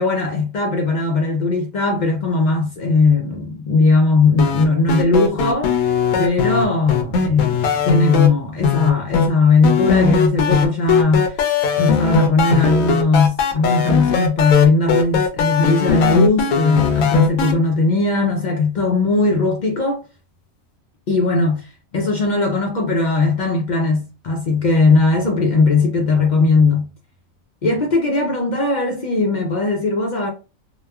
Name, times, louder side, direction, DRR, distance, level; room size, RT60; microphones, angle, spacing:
voice 1, 0.0-5.7 6.2-11.4 11.8-20.0 21.1-26.9 27.6-30.3, left 3 dB, 70° left, 0.4 m, -18 dB
sound 1, 4.4-8.3 8.6-9.3 9.6-17.5, left 5 dB, 85° left, 1.0 m, -19 dB
3.0 x 2.1 x 2.2 m
omnidirectional pair, 1.4 m